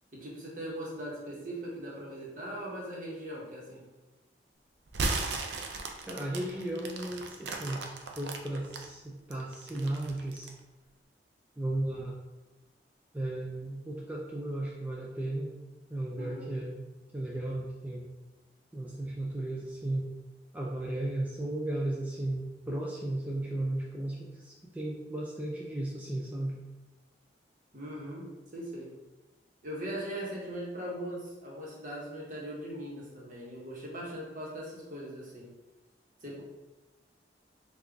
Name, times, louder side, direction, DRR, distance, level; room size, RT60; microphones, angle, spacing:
voice 1, 0.1-3.8 16.1-16.6 27.7-28.3 28.5-28.9 29.6-35.5 36.2-36.4, right 1 dB, 45° right, -4 dB, 1.0 m, -40 dB
sound 1, 4.9-8.8 9.3-10.6, right 3 dB, 75° right, 0.5 m, -35 dB
voice 2, 6.1-10.5 11.6-12.2 13.1-15.5 15.9-16.8 17.1-18.0 18.7-20.1 20.5-26.6, right 1 dB, 10° right, -4 dB, 0.3 m, -35 dB
3.7 x 2.4 x 3.4 m, 1.1 s
head